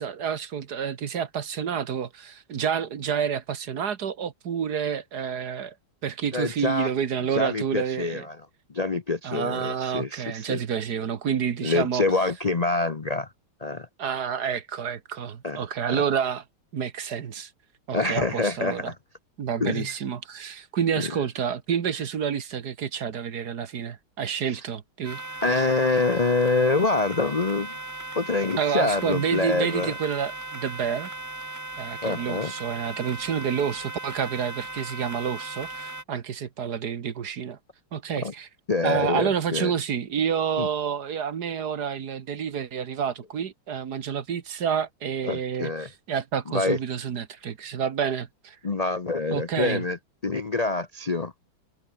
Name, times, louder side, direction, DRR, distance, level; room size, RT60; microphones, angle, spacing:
voice 1, 0.0-5.7 6.0-8.3 9.2-12.0 14.0-16.4 16.7-17.5 17.9-18.9 19.4-25.2 25.5-25.6 28.6-31.1 31.8-37.6 37.9-38.5 38.8-48.6 49.3-49.8, right 7 dB, 55° right, 1.8 m, -29 dB
voice 2, 6.3-6.9 7.3-8.4 8.7-10.6 11.6-13.3 13.6-13.9 15.4-15.6 15.9-16.0 17.9-18.9 19.6-19.9 25.4-27.8 28.1-29.9 32.0-32.5 38.2-38.3 38.7-39.7 40.6-40.7 45.2-45.9 46.5-46.8 48.6-50.0 50.2-51.3, left 3 dB, 40° left, 0.5 m, -26 dB
sound 1, 25.0-36.0, right 2 dB, 15° right, 0.8 m, -37 dB
omnidirectional pair, 2.2 m